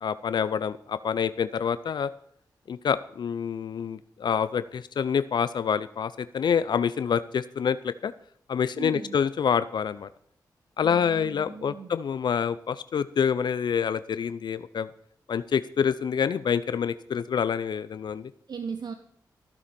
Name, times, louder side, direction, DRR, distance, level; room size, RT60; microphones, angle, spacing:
voice 1, 0.0-2.1 2.7-8.1 8.5-10.1 10.8-14.9 15.3-18.3, left 7 dB, 70° left, 15 dB, 0.5 m, -27 dB
voice 2, 8.7-9.2 10.8-11.9 18.5-18.9, right 6 dB, 60° right, 8 dB, 0.9 m, -37 dB
15.0 x 9.6 x 4.3 m, 0.66 s
cardioid pair, 60°, 8 cm